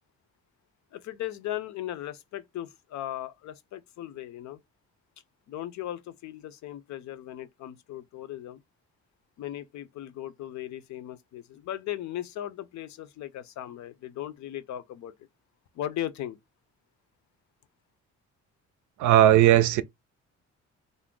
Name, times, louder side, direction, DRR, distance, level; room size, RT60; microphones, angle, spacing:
voice 1, 0.9-4.6 5.5-8.6 9.4-15.1 15.7-16.4, left 12 dB, 70° left, 0.5 m, -37 dB
voice 2, 19.0-19.8, right 12 dB, 75° right, 0.5 m, -17 dB
2.5 x 2.1 x 3.6 m
cardioid pair, 90°, 30 cm